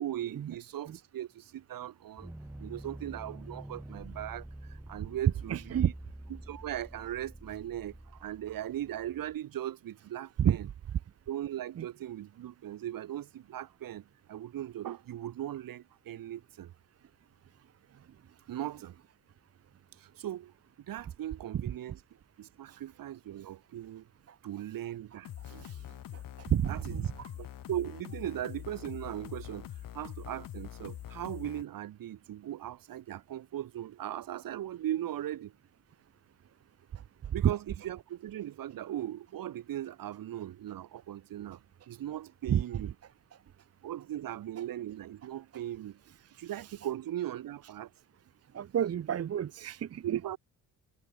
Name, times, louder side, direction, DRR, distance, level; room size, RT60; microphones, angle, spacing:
voice 1, 0.0-2.3 2.6-5.9 6.3-10.7 11.3-16.7 18.5-19.0 20.0-20.5 20.9-22.0 22.4-24.1 24.4-25.7 26.7-27.0 27.4-35.5 37.3-42.9 43.8-46.0 46.4-47.9 50.0-50.4, right 12 dB, 70° right, 4.2 m, -39 dB
sound 1, 2.2-9.4, right 1 dB, 5° right, 1.3 m, -47 dB
voice 2, 5.5-5.9 10.4-10.6 11.8-11.9 21.5-21.6 25.5-25.8 26.5-27.3 37.4-37.5 42.5-42.6 45.5-45.6 46.6-46.7 48.5-50.2, right 9 dB, 45° right, 0.9 m, -29 dB
sound 2, 25.2-31.6, left 12 dB, 70° left, 3.8 m, -44 dB
cardioid pair, 100°, 34 cm